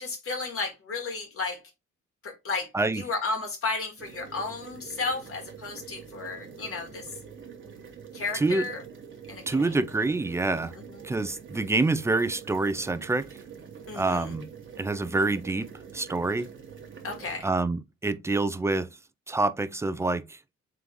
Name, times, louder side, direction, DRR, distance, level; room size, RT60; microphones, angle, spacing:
voice 1, 0.0-1.6 2.2-2.7 2.9-7.1 8.1-8.8 9.3-9.9 10.9-11.0 13.9-14.4 17.0-17.5, left 3 dB, 45° left, 1.8 m, -33 dB
sound 1, 4.0-17.4, right 7 dB, 40° right, 1.2 m, -45 dB
voice 2, 8.3-8.6 9.5-10.7 11.0-13.3 13.9-14.5 14.8-15.7 15.9-16.5 17.4-18.9 19.3-20.4, right 3 dB, 10° right, 0.4 m, -26 dB
3.7 x 3.5 x 3.0 m
cardioid pair, 90°, 30 cm